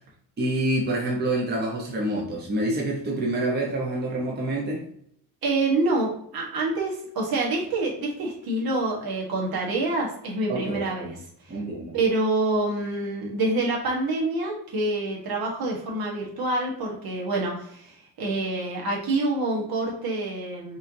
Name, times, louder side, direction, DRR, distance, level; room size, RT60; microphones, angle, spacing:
voice 1, 0.4-4.8 10.5-11.1 11.5-11.9, right 1 dB, 25° right, -2 dB, 0.8 m, -27 dB
voice 2, 5.4-11.1 11.9-20.8, right 2 dB, 65° right, -2 dB, 1.4 m, -27 dB
5.4 x 3.2 x 2.7 m, 0.67 s
cardioid pair, 160°, 39 cm